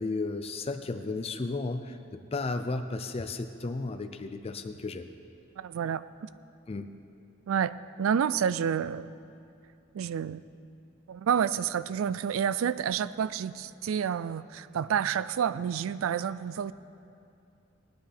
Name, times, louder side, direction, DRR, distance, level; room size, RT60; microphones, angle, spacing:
voice 1, 0.0-5.1 6.7-6.9, left 3 dB, 30° left, 7 dB, 0.4 m, -34 dB
voice 2, 5.6-6.3 7.5-9.1 9.9-10.4 11.1-16.7, right 8 dB, 85° right, 16 dB, 0.3 m, -29 dB
19.5 x 9.5 x 3.4 m, 2.6 s
head